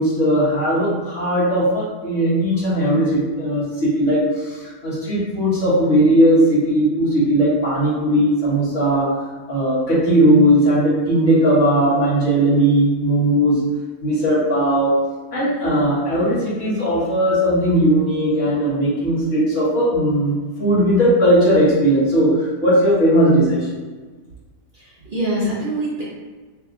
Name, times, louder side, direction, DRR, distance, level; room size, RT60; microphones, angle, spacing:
voice 1, 0.0-9.2 9.5-13.6 14.0-15.0 15.3-23.7, right 1 dB, 60° left, -8 dB, 1.6 m, -17 dB
voice 2, 24.7-26.0, right 1 dB, 45° right, -7 dB, 0.8 m, -24 dB
3.0 x 2.9 x 3.8 m, 1.4 s
omnidirectional pair, 1.5 m